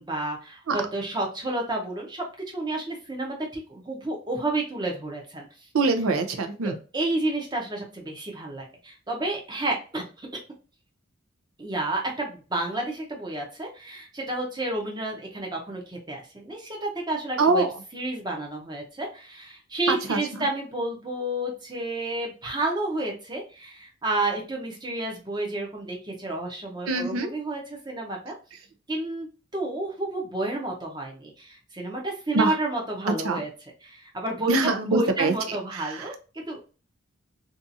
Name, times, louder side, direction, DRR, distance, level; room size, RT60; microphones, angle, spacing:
voice 1, 0.0-5.5 6.6-10.3 11.6-17.6 17.9-28.3 28.9-29.3 29.5-33.5 33.8-36.1 36.5-36.6, right 2 dB, 20° right, 0 dB, 0.6 m, -30 dB
voice 2, 5.7-6.7 17.4-17.7 19.9-20.4 26.9-27.3 32.3-32.5 33.2-33.4 34.5-35.3 35.7-36.1, right 3 dB, 90° right, 6 dB, 0.5 m, -24 dB
2.7 x 2.4 x 2.6 m, 0.34 s
head